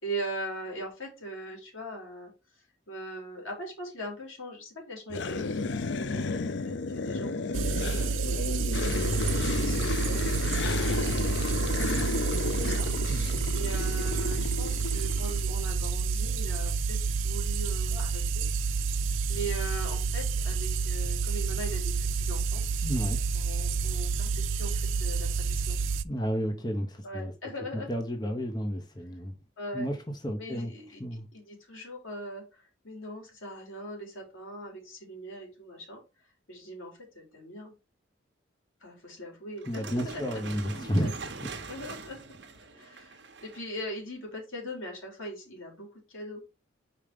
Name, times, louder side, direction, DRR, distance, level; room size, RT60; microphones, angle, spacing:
voice 1, 0.0-2.3 2.9-8.7 9.2-13.2 13.5-18.5 19.3-22.6 23.3-25.8 27.0-27.9 29.6-29.9 30.4-31.0 31.3-36.0 36.5-37.7 38.8-40.5 40.9-41.1 41.7-42.2 42.8-46.4, right 1 dB, 85° left, 3.6 m, -41 dB
sound 1, 5.1-15.4, left 3 dB, 60° left, 0.5 m, -32 dB
sound 2, 7.5-26.0, right 5 dB, 80° right, 0.5 m, -29 dB
voice 2, 22.8-23.2 26.0-27.3 27.7-29.3 29.7-30.0 30.2-30.7 31.0-31.3 39.7-41.1, equal, 20° left, 0.9 m, -31 dB
sound 3, 39.6-43.8, right 4 dB, 65° right, 1.0 m, -43 dB
5.1 x 4.5 x 5.1 m
head